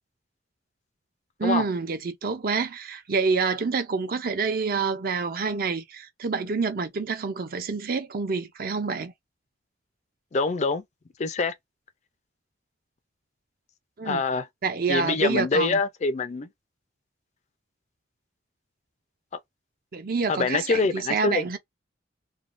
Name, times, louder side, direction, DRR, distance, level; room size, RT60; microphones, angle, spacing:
voice 1, 1.4-9.1 14.0-14.2 14.6-15.8 19.9-21.6, right 4 dB, 50° right, 0.5 m, -27 dB
voice 2, 10.3-10.8 11.2-11.5 14.0-14.4 14.9-16.5 19.3-19.4 20.3-21.4, left 3 dB, 40° left, 0.4 m, -25 dB
3.3 x 2.2 x 2.5 m
head